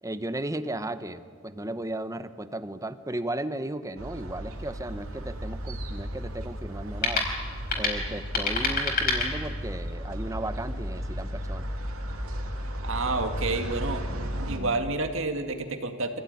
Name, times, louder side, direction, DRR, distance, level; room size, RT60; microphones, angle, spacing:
voice 1, 0.0-7.3 7.7-11.7, right 1 dB, 15° right, 11 dB, 0.9 m, -35 dB
sound 1, 4.0-14.6, equal, 85° right, 3.0 m, -34 dB
sound 2, 4.5-9.9, left 3 dB, 45° left, 4.5 m, -31 dB
voice 2, 12.8-14.0 14.4-16.2, right 3 dB, 65° right, 6 dB, 2.1 m, -29 dB
25.5 x 16.0 x 9.6 m, 2.1 s
head